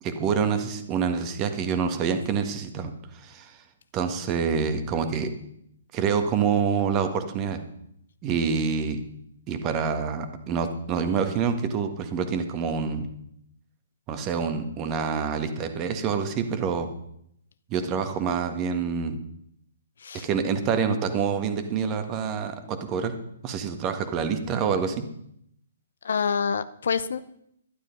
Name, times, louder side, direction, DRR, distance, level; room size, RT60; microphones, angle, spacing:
voice 1, 0.0-3.6 3.9-5.3 5.9-7.6 8.2-9.0 9.5-13.1 14.1-16.9 17.7-19.2 20.1-23.1 23.4-25.1, right 6 dB, 25° right, 7 dB, 1.7 m, -27 dB
voice 2, 26.0-27.2, left 6 dB, 60° left, 15 dB, 0.7 m, -27 dB
12.0 x 11.5 x 5.4 m, 0.73 s
figure-of-eight pair, 125°, 0 cm